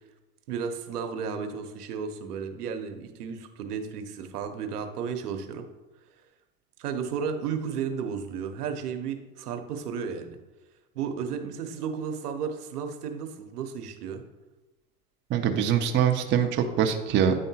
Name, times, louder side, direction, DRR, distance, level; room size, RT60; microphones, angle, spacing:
voice 1, 0.5-5.7 6.8-10.4 10.9-14.2, right 6 dB, 75° right, 6 dB, 0.9 m, -33 dB
voice 2, 15.3-17.3, right 8 dB, 25° right, 4 dB, 0.5 m, -23 dB
9.5 x 3.6 x 2.8 m, 1.1 s
hypercardioid pair, 95°, 46 cm